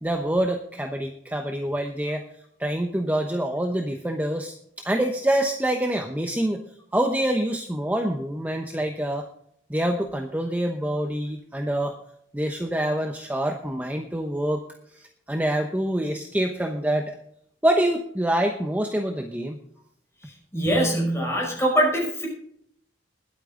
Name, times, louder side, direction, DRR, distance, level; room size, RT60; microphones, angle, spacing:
voice 1, 0.0-2.2 2.6-4.5 4.8-6.6 6.9-9.2 9.7-12.0 12.3-14.6 15.0-17.1 17.6-19.6, right 1 dB, 10° right, 4 dB, 0.9 m, -26 dB
voice 2, 20.5-22.3, right 1 dB, 15° left, -1 dB, 5.5 m, -23 dB
21.0 x 8.7 x 3.8 m, 0.70 s
head